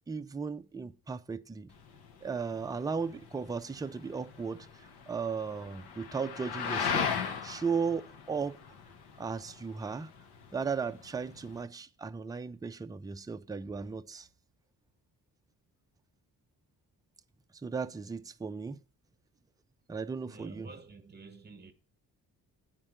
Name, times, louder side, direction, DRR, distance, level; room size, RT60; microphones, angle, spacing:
voice 1, 0.1-1.7 2.2-8.6 9.2-10.1 10.5-14.3 17.6-18.8 19.9-20.7, right 5 dB, 10° right, 0.3 m, -36 dB
sound 1, 1.7-11.6, left 6 dB, 85° left, 1.0 m, -38 dB
voice 2, 20.2-21.7, right 3 dB, 25° right, 1.1 m, -50 dB
8.9 x 4.5 x 7.1 m
cardioid pair, 110°, 38 cm